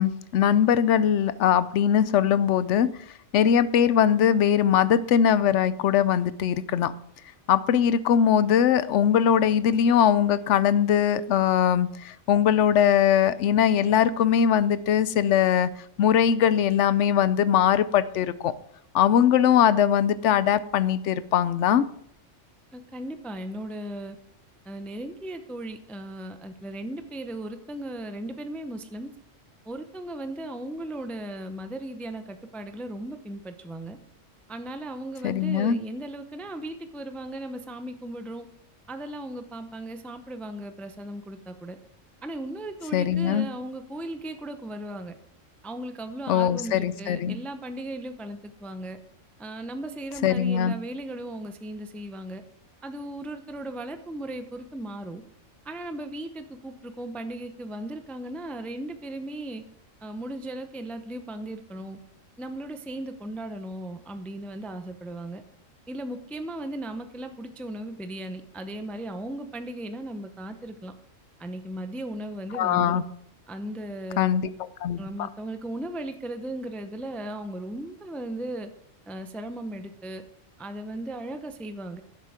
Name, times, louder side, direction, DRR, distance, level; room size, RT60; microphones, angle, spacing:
voice 1, 0.0-2.9 3.3-6.9 7.5-15.7 16.0-18.5 18.9-21.8 35.2-35.8 42.9-43.5 46.3-47.4 50.2-50.7 72.5-73.0 74.2-75.0, left 9 dB, 70° left, 16 dB, 0.9 m, -21 dB
voice 2, 22.7-24.2 24.7-29.1 29.7-34.0 34.5-38.5 38.9-41.8 42.2-45.2 45.6-49.0 49.4-52.4 52.8-55.2 55.6-59.6 60.0-62.0 62.4-65.4 65.9-70.9 71.4-73.0 73.5-74.4 75.0-78.7 79.1-80.2 80.6-82.0, right 1 dB, ahead, 8 dB, 0.5 m, -36 dB
11.5 x 7.5 x 4.9 m, 0.70 s
omnidirectional pair, 1.3 m